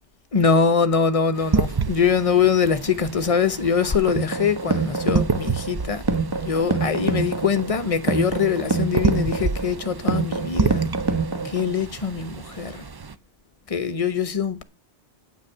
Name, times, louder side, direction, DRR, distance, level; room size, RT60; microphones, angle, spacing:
voice 1, 0.3-6.0 6.4-10.9 11.4-12.8 13.7-14.6, left 6 dB, 35° left, 0.9 m, -23 dB
sound 1, 1.3-13.1, right 5 dB, 40° right, 0.3 m, -29 dB
sound 2, 3.8-11.8, right 4 dB, 20° right, 1.2 m, -26 dB
9.4 x 7.3 x 6.6 m
omnidirectional pair, 1.2 m